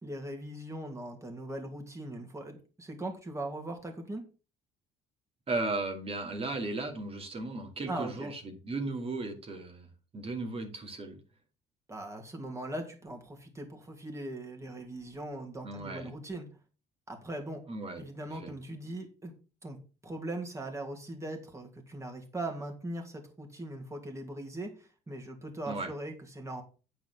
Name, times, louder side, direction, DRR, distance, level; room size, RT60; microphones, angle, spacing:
voice 1, 0.0-4.2 7.9-8.3 11.9-16.5 17.1-17.6 18.0-19.3 19.6-19.8 20.0-26.6, right 1 dB, 15° right, 3 dB, 2.7 m, -40 dB
voice 2, 5.5-9.9 10.1-11.2 15.6-16.2 17.7-18.0 18.3-18.5 25.7-25.9, right 2 dB, 35° right, 5 dB, 2.5 m, -36 dB
9.4 x 4.7 x 6.1 m, 0.34 s
cardioid pair, 110°, 17 cm